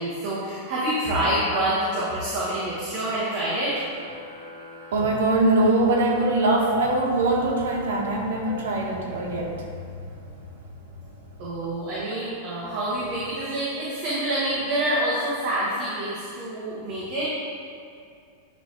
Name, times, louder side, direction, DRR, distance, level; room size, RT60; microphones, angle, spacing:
voice 1, 0.0-3.8 11.4-17.3, right 1 dB, 40° right, -9 dB, 1.2 m, -27 dB
sound 1, 3.0-5.9, equal, 25° left, 0.9 m, -44 dB
voice 2, 4.9-9.7 10.0-10.4, right 2 dB, 85° right, 0 dB, 1.1 m, -22 dB
9.2 x 3.3 x 3.4 m, 2.4 s
supercardioid pair, 175°, 0 cm